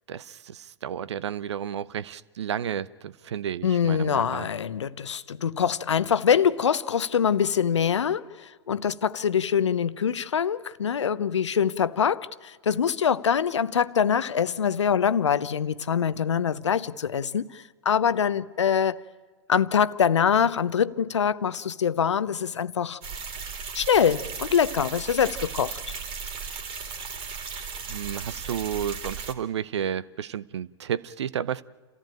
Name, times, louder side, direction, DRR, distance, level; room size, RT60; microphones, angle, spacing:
voice 1, 0.1-4.5 27.2-27.3 27.9-31.6, right 9 dB, 70° right, 0.7 m, -32 dB
voice 2, 3.6-19.0 19.5-23.0 23.7-25.9, left 7 dB, 80° left, 0.7 m, -24 dB
sound 1, 23.0-29.3, right 5 dB, 40° right, 2.7 m, -36 dB
29.0 x 14.5 x 8.8 m
hypercardioid pair, 100°, 15 cm